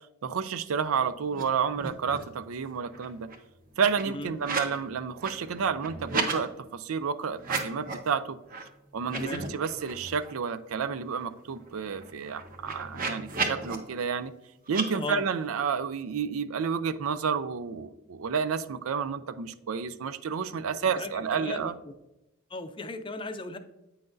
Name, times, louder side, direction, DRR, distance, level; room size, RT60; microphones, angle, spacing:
voice 1, 0.2-3.3 3.8-8.4 8.9-14.3 14.7-21.8, right 6 dB, 85° right, 12 dB, 0.4 m, -30 dB
sound 1, 1.3-1.4 1.7-2.4 2.7-4.8 5.1-6.4 7.3-8.1 8.5-8.6 9.0-10.3 10.7-10.8 11.1-13.8 14.7-14.9, right 4 dB, 40° right, 0.9 m, -35 dB
voice 2, 9.1-9.4 14.9-15.2 20.8-21.7 22.5-23.6, left 2 dB, 25° left, 9 dB, 0.5 m, -36 dB
8.7 x 5.8 x 2.6 m, 0.95 s
head